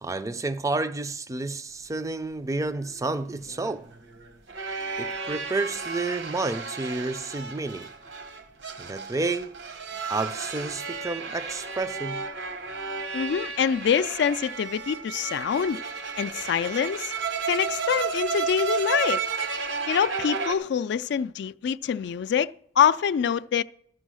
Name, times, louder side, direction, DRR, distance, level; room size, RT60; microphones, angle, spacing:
voice 1, 0.0-3.9 5.0-7.9 8.8-9.6 10.1-12.2, right 3 dB, 20° right, 0.4 m, -30 dB
sound 1, 2.8-20.5, right 5 dB, 85° right, 1.0 m, -33 dB
voice 2, 13.1-15.8 16.2-17.1 17.5-19.2 19.9-23.6, left 7 dB, 65° left, 0.3 m, -25 dB
13.0 x 6.3 x 6.2 m
head